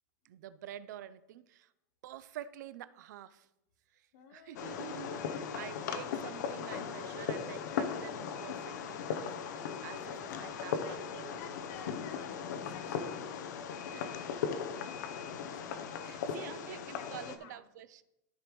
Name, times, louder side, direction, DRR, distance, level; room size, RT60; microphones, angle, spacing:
voice 1, 0.2-1.7 2.0-3.5 3.9-11.4 13.9-14.1 14.5-14.7 16.0-18.0, right 12 dB, 75° right, 14 dB, 0.5 m, -48 dB
voice 2, 4.1-4.9 10.0-10.5 10.8-14.3 14.7-14.8 15.4-15.7 16.2-17.6, left 6 dB, 55° left, 9 dB, 1.0 m, -54 dB
Fireworks, 4.6-17.4, left 7 dB, 85° left, 0.8 m, -38 dB
13.5 x 5.1 x 3.1 m, 0.91 s
supercardioid pair, 165°, 9 cm